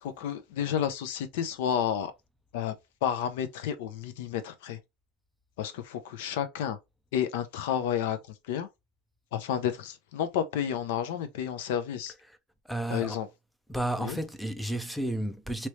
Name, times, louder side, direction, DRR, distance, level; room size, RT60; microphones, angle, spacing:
voice 1, 0.0-2.1 2.5-2.7 3.0-4.8 5.6-6.8 7.1-8.2 8.5-8.7 9.3-12.1 12.9-13.3 14.0-14.2, left 9 dB, 85° left, 0.6 m, -31 dB
voice 2, 12.7-13.2 13.7-15.7, right 1 dB, ahead, 0.4 m, -32 dB
3.1 x 2.9 x 2.9 m
supercardioid pair, 140°, 0 cm